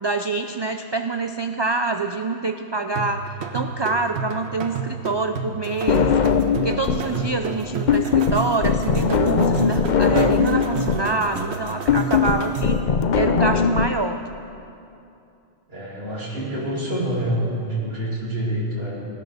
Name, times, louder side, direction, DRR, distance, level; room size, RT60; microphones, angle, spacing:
voice 1, 0.0-6.2 6.6-12.8 13.1-14.2, right 3 dB, 45° right, 7 dB, 0.3 m, -26 dB
sound 1, 3.0-12.9, right 5 dB, 85° right, 1.2 m, -31 dB
sound 2, 5.9-7.1 7.4-13.9, left 6 dB, 50° left, 0.7 m, -20 dB
voice 2, 7.1-7.4 15.7-19.1, right 1 dB, 70° right, -5 dB, 3.3 m, -27 dB
17.0 x 10.5 x 6.6 m, 2.7 s
omnidirectional pair, 1.1 m